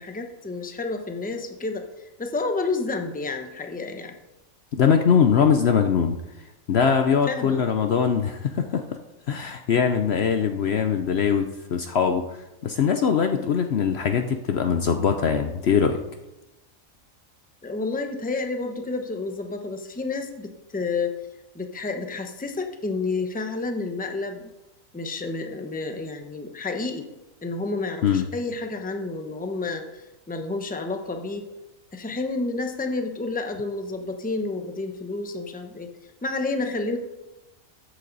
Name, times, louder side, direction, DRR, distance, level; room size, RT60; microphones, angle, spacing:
voice 1, 0.0-4.1 7.2-7.6 17.6-21.1 21.5-24.5 24.9-27.1 27.4-31.5 31.9-35.9 36.2-37.0, left 3 dB, 10° left, 5 dB, 0.8 m, -30 dB
voice 2, 4.7-6.2 6.7-8.8 9.3-12.4 12.6-16.0 28.0-28.3, left 7 dB, 60° left, 7 dB, 0.8 m, -22 dB
13.5 x 8.3 x 4.0 m, 0.99 s
omnidirectional pair, 1.4 m